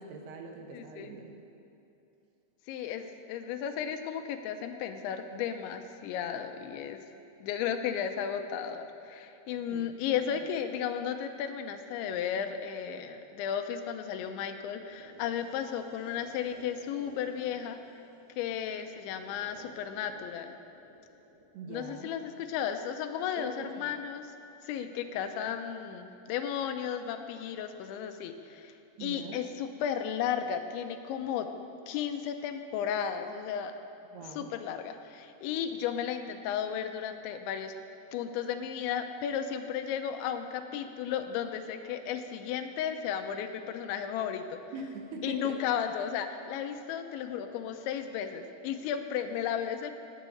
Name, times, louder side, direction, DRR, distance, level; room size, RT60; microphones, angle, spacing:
voice 1, 0.0-1.3 9.7-9.9 10.1-10.4 21.5-22.2 23.4-23.9 29.0-29.4 34.1-34.5 44.7-45.6, right 3 dB, 70° right, 2 dB, 2.8 m, -43 dB
voice 2, 0.7-1.1 2.7-7.0 7.4-17.8 18.4-20.5 21.7-24.3 24.6-28.7 29.0-31.5 31.9-33.8 34.4-37.7 38.1-44.6 45.2-49.9, left 8 dB, 85° left, 7 dB, 3.1 m, -34 dB
sound 1, 14.7-22.7, right 1 dB, 40° right, 1.6 m, -55 dB
18.0 x 7.4 x 7.8 m, 2.8 s
omnidirectional pair, 5.3 m